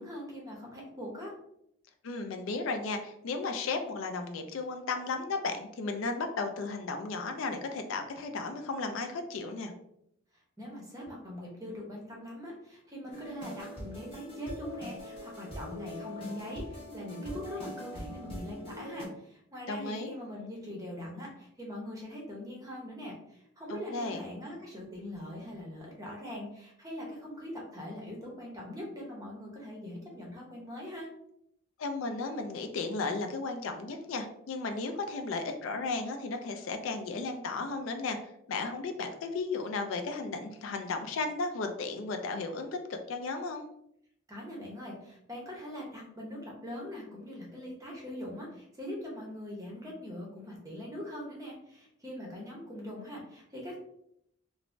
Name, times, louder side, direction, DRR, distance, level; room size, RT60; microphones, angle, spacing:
voice 1, 0.0-1.3 10.6-31.1 44.3-53.8, left 1 dB, 15° right, -2 dB, 0.6 m, -42 dB
voice 2, 2.0-9.7 19.7-20.1 23.7-24.2 31.8-38.2 38.5-43.7, left 3 dB, 70° left, 6 dB, 0.3 m, -34 dB
sound 1, 13.1-19.1, equal, 25° left, 0.8 m, -42 dB
3.1 x 2.0 x 2.5 m, 0.75 s
head